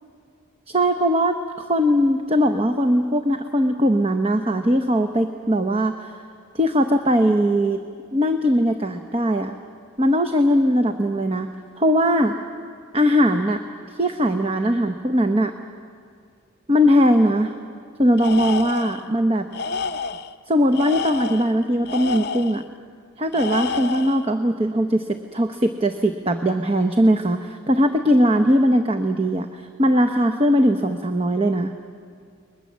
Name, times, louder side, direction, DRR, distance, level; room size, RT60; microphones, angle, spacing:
voice 1, 0.7-6.1 6.5-7.8 8.1-9.5 10.0-11.5 11.8-12.3 12.9-13.6 14.0-15.5 16.7-17.5 18.0-19.5 20.5-22.6 23.2-25.0 25.3-31.7, equal, 25° right, 6 dB, 0.9 m, -20 dB
Tools, 18.2-19.1 19.5-20.3 20.7-22.6 23.3-24.3, left 4 dB, 50° left, 0.6 m, -29 dB
30.0 x 21.5 x 7.4 m, 2.2 s
head